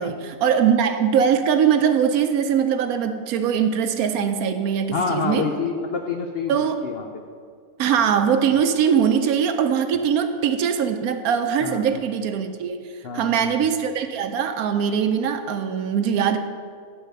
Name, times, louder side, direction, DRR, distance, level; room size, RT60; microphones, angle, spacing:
voice 1, 0.0-5.5 6.5-6.8 7.8-12.8 13.1-16.4, right 7 dB, 70° right, 8 dB, 1.0 m, -21 dB
voice 2, 4.9-7.2 8.5-8.6 11.6-11.8 13.0-13.5, left 5 dB, 85° left, 3 dB, 0.5 m, -28 dB
9.7 x 3.9 x 6.5 m, 2.1 s
omnidirectional pair, 1.7 m